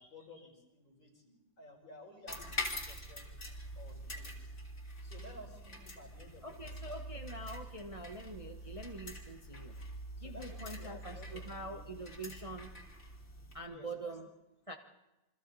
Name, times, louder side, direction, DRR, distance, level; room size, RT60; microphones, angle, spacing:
voice 1, 0.0-3.3 3.8-4.5 5.0-6.9 10.1-11.8 13.7-14.1, left 1 dB, 80° left, 0 dB, 5.3 m, -54 dB
sound 1, 2.3-13.6, left 1 dB, 35° left, 3.1 m, -45 dB
voice 2, 6.4-9.8 10.2-12.7 13.5-14.3 14.7-14.8, right 2 dB, 20° right, 3 dB, 1.0 m, -45 dB
28.5 x 24.5 x 4.2 m, 1.0 s
omnidirectional pair, 2.0 m